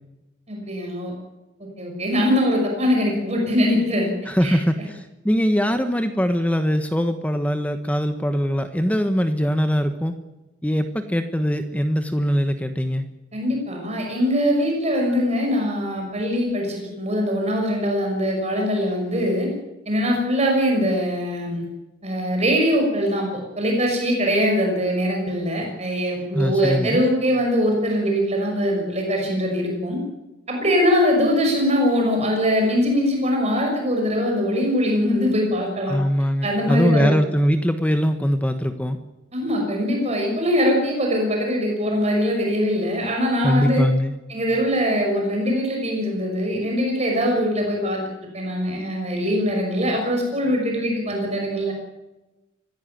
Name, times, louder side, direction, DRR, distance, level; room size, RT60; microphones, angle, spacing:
voice 1, 0.5-1.1 1.8-4.1 4.4-4.6 13.3-19.5 19.9-21.6 22.0-23.3 23.6-30.0 30.5-36.0 36.4-37.2 39.3-43.8 44.3-48.0 48.3-51.7, equal, 35° right, 1 dB, 6.0 m, -22 dB
voice 2, 4.3-5.0 5.2-10.1 10.6-13.1 26.3-27.0 35.9-39.0 43.4-44.1, equal, 10° left, 8 dB, 1.3 m, -21 dB
25.5 x 16.5 x 9.4 m, 1.1 s
head